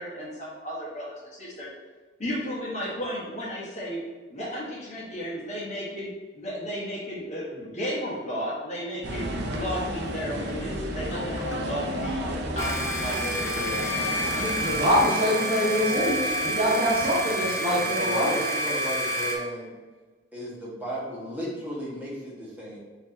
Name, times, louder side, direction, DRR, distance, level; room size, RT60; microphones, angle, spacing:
voice 1, 0.0-1.7 2.2-4.0 4.3-12.2 12.5-14.6, equal, 40° left, -5 dB, 1.2 m, -34 dB
sound 1, 9.0-15.0, right 1 dB, 60° right, 0.6 m, -33 dB
sound 2, 9.5-18.8, left 2 dB, 75° left, 0.7 m, -38 dB
sound 3, 12.6-19.3, right 1 dB, 15° left, 0.6 m, -29 dB
voice 2, 14.3-18.3, equal, 30° right, -6 dB, 1.1 m, -25 dB
voice 3, 17.8-19.7 20.3-22.8, equal, 10° right, -7 dB, 1.4 m, -35 dB
4.6 x 2.8 x 3.9 m, 1.3 s
head